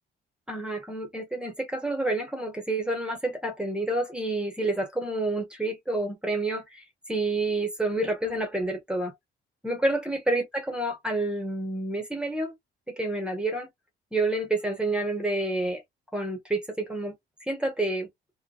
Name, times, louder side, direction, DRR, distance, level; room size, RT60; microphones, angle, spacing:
voice 1, 0.5-9.1 9.6-12.5 12.9-13.7 14.1-15.8 16.1-17.1 17.5-18.1, right 2 dB, 5° right, 0.9 m, -29 dB
2.8 x 2.2 x 2.3 m
cardioid pair, 90°, 20 cm